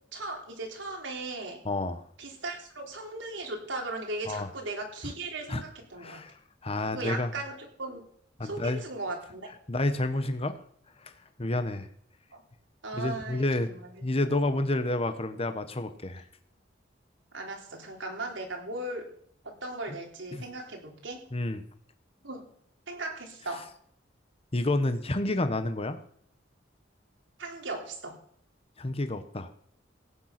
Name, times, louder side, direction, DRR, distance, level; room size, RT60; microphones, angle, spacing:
voice 1, 0.1-1.6 2.2-6.2 6.9-8.1 8.4-9.5 12.3-12.4 12.8-14.0 17.3-19.1 19.4-21.2 22.2-22.4 22.9-23.7 27.4-28.2, right 2 dB, 90° right, 1 dB, 3.7 m, -37 dB
voice 2, 1.6-2.0 4.3-4.5 5.5-5.6 6.0-6.3 6.6-7.3 8.4-8.8 9.7-10.6 11.0-11.1 11.4-11.9 12.9-16.2 20.3-20.4 21.3-21.6 24.5-26.0 28.8-29.5, left 2 dB, 30° left, 9 dB, 1.1 m, -29 dB
16.5 x 9.2 x 5.9 m, 0.63 s
head